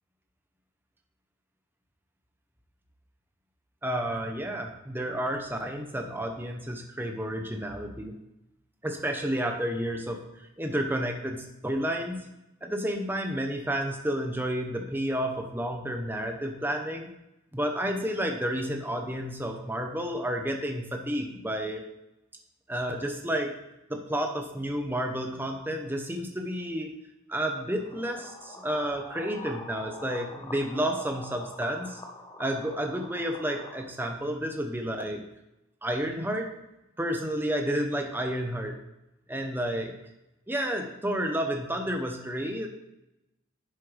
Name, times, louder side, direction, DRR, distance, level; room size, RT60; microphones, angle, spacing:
voice 1, 3.8-8.2 8.8-12.3 12.6-17.1 17.5-21.9 22.7-23.5 23.9-27.0 27.3-32.0 32.4-35.2 35.8-36.5 37.0-38.8 39.3-39.9 40.5-42.8, equal, 10° right, 4 dB, 0.9 m, -31 dB
sound 1, 27.8-33.8, left 2 dB, 20° left, 0.8 m, -44 dB
11.0 x 7.5 x 3.4 m, 0.91 s
head